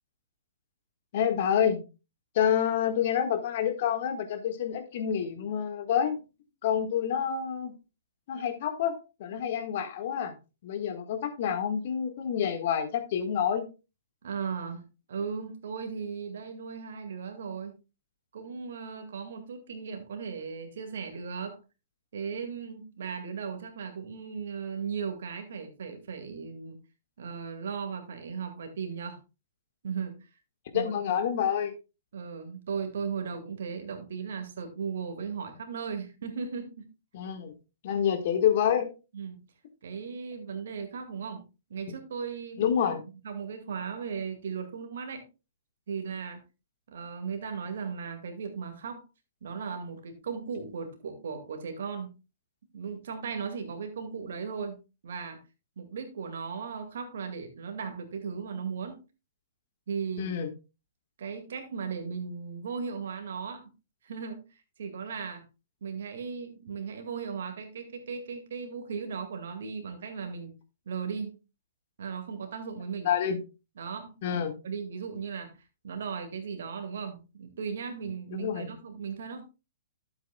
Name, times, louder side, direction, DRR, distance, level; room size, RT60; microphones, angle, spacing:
voice 1, 1.1-1.8 2.3-6.2 6.6-7.7 8.3-8.9 9.2-10.3 10.6-13.7 30.7-31.7 37.1-37.5 37.8-38.9 42.6-43.0 60.2-60.5 73.0-73.4 74.2-74.5 78.3-78.7, left 8 dB, 50° left, 7 dB, 1.6 m, -28 dB
voice 2, 14.2-17.7 18.3-21.6 22.1-26.8 27.2-29.2 29.8-30.2 30.7-30.9 32.1-36.9 39.1-39.4 39.8-41.4 41.7-45.2 45.9-46.4 46.9-49.0 49.4-52.1 52.7-54.8 55.0-55.4 55.8-59.0 59.9-60.4 61.2-63.7 64.0-65.4 65.8-70.5 70.9-71.3 72.0-73.1 73.8-75.5 75.8-79.4, right 6 dB, 60° right, 5 dB, 2.0 m, -37 dB
12.0 x 8.0 x 2.3 m, 0.29 s
figure-of-eight pair, 115°, 0 cm